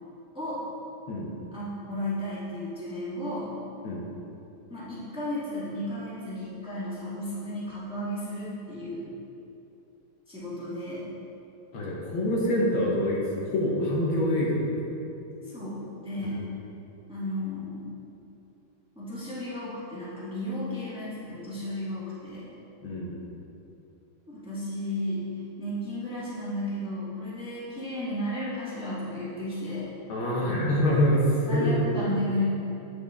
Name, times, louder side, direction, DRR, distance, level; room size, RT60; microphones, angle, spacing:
voice 1, 0.3-0.7 1.5-3.6 4.7-9.2 10.3-11.1 15.4-16.4 17.1-17.9 18.9-22.6 24.3-25.3 25.6-29.9 31.5-32.4, left 1 dB, 5° right, -9 dB, 1.5 m, -34 dB
voice 2, 11.7-14.8 16.2-16.4 22.8-23.1 30.1-32.1, equal, 75° left, -3 dB, 1.9 m, -25 dB
9.2 x 6.0 x 3.6 m, 2.8 s
omnidirectional pair, 2.2 m